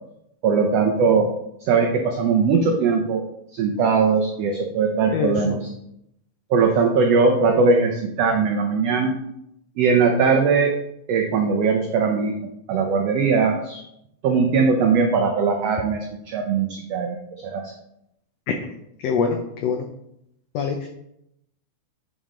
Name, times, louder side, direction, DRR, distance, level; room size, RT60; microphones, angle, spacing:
voice 1, 0.4-1.3 1.6-3.2 3.5-5.7 6.5-9.2 9.8-10.8 11.1-12.3 12.7-13.8 14.2-17.7, right 5 dB, 85° right, 3 dB, 1.4 m, -20 dB
voice 2, 5.1-5.6 18.6-18.8 19.0-19.8 20.5-20.9, left 6 dB, 90° left, 4 dB, 1.4 m, -25 dB
9.0 x 5.2 x 3.7 m, 0.79 s
omnidirectional pair, 3.7 m